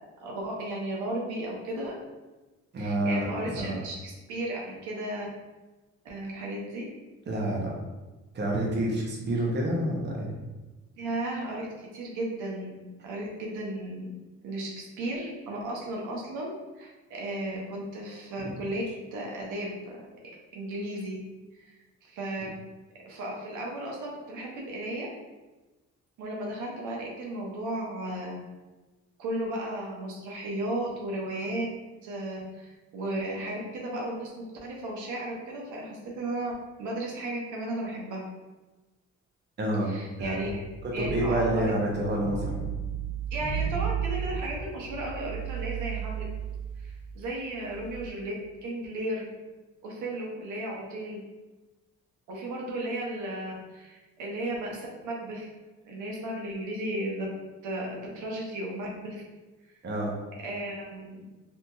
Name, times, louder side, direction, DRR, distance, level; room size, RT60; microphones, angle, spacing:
voice 1, 0.2-2.0 2.8-5.3 6.0-6.8 11.0-14.1 14.4-14.7 15.0-18.8 19.1-19.8 20.5-21.2 21.5-21.7 22.0-22.5 23.1-25.1 26.2-28.4 29.2-31.7 32.0-36.5 36.8-38.2 39.8-40.6 40.9-41.7 43.3-46.2 46.8-48.3 48.6-49.2 49.8-51.2 52.3-55.5 55.8-57.3 57.6-59.2 60.4-61.2, right 1 dB, 80° right, -2 dB, 0.7 m, -34 dB
voice 2, 2.7-3.2 3.5-3.8 7.3-7.7 8.3-10.3 39.6-39.9 40.2-40.5 40.8-42.7 59.8-60.1, right 1 dB, 35° right, -2 dB, 0.7 m, -28 dB
sound 1, 40.2-48.1, right 8 dB, 50° left, 1.1 m, -34 dB
2.7 x 2.7 x 2.3 m, 1.2 s
cardioid pair, 90°, 30 cm